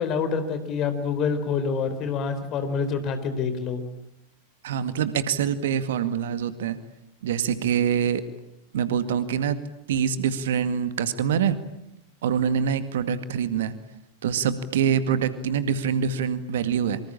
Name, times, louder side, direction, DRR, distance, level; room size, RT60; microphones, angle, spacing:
voice 1, 0.0-3.8, left 5 dB, 35° left, 10 dB, 4.3 m, -27 dB
voice 2, 4.6-6.8 7.2-8.2 8.7-9.6 9.9-11.6 12.2-13.7 14.2-17.0, right 8 dB, 60° right, 12 dB, 2.0 m, -25 dB
26.5 x 25.0 x 8.8 m, 0.84 s
figure-of-eight pair, 90°, 0 cm